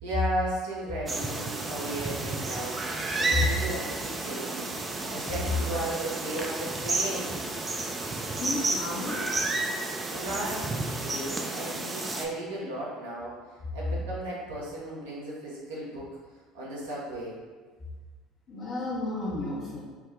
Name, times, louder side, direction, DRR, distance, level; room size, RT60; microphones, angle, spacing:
voice 1, 0.0-4.8 5.1-7.4 10.1-13.4 13.7-16.1 16.5-17.4, right 1 dB, 75° right, -6 dB, 0.9 m, -35 dB
sound 1, 1.1-12.3, right 2 dB, 25° right, 0.4 m, -31 dB
voice 2, 8.4-9.6 18.5-19.8, left 2 dB, 45° left, -6 dB, 0.6 m, -33 dB
3.4 x 2.1 x 3.5 m, 1.4 s
hypercardioid pair, 65°, 0 cm